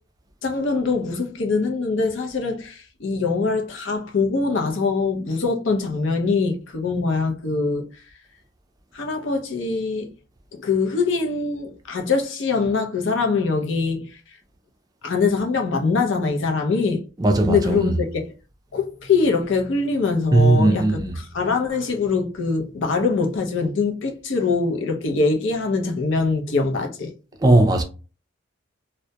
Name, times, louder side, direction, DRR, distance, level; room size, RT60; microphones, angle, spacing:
voice 1, 0.4-7.9 8.9-10.1 10.5-14.2 15.0-17.0 17.5-18.3 18.7-20.8 21.2-27.1, left 4 dB, 75° left, 0.6 m, -23 dB
voice 2, 17.2-17.9 20.3-21.2 27.4-27.8, right 2 dB, 20° right, 0.3 m, -17 dB
2.2 x 2.1 x 2.7 m
head